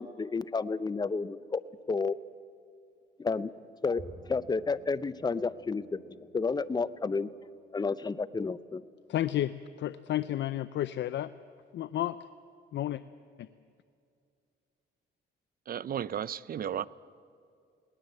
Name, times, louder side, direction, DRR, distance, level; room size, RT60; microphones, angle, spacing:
voice 1, 0.0-1.6 1.9-2.1 3.2-3.5 3.8-4.0 4.3-6.0 6.3-7.3 7.7-8.8, left 4 dB, 20° left, 15 dB, 0.7 m, -31 dB
Bowed string instrument, 4.0-7.4, right 2 dB, 25° right, 1.5 m, -53 dB
voice 2, 9.1-9.5 9.8-11.3 11.7-12.2 12.7-13.0 13.4-13.5, left 13 dB, 65° left, 14 dB, 0.6 m, -31 dB
voice 3, 15.7-16.9, right 9 dB, 50° right, 19 dB, 0.6 m, -34 dB
20.0 x 19.0 x 7.9 m, 2.4 s
cardioid pair, 90°, 20 cm